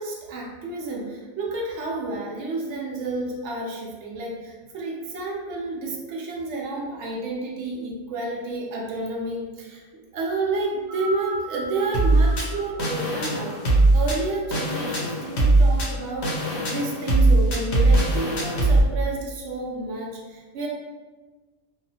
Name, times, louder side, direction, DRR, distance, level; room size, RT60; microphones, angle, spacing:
voice 1, 0.0-9.8 10.1-16.3 16.7-20.7, right 2 dB, 80° right, -2 dB, 0.9 m, -30 dB
sound 1, 10.8-15.3 16.2-16.3, right 1 dB, 45° right, 0.5 m, -38 dB
sound 2, 11.9-18.8, right 2 dB, 70° left, 0.9 m, -20 dB
2.7 x 2.4 x 2.7 m, 1.3 s
omnidirectional pair, 1.2 m